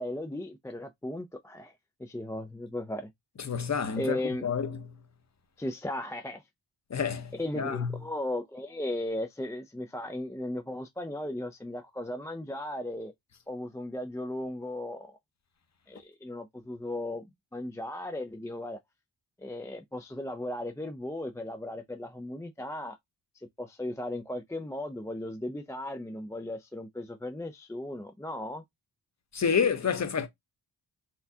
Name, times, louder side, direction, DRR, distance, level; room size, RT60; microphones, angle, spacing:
voice 1, 0.0-3.1 4.0-4.5 5.6-6.4 7.3-13.1 13.5-15.2 15.9-17.3 17.5-18.8 19.4-23.0 23.3-28.6, left 1 dB, 5° left, 0.3 m, -36 dB
voice 2, 3.4-4.7 6.9-7.9 29.3-30.3, left 6 dB, 35° left, 0.8 m, -29 dB
4.3 x 2.3 x 2.7 m
wide cardioid pair, 95°, 46 cm